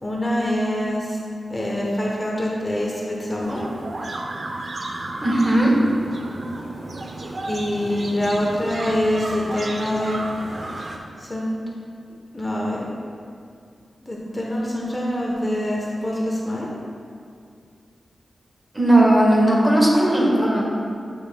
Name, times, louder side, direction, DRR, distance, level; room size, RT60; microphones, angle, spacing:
voice 1, 0.0-1.2 1.5-3.7 7.5-10.3 11.2-11.5 12.3-12.9 14.0-16.7, left 1 dB, 20° left, -3 dB, 0.9 m, -25 dB
sound 1, 3.4-11.0, right 2 dB, 55° right, 0.6 m, -33 dB
voice 2, 5.2-5.7 18.7-20.7, right 1 dB, 25° right, -4 dB, 1.5 m, -17 dB
8.0 x 6.3 x 2.3 m, 2.3 s
wide cardioid pair, 75°, 0 cm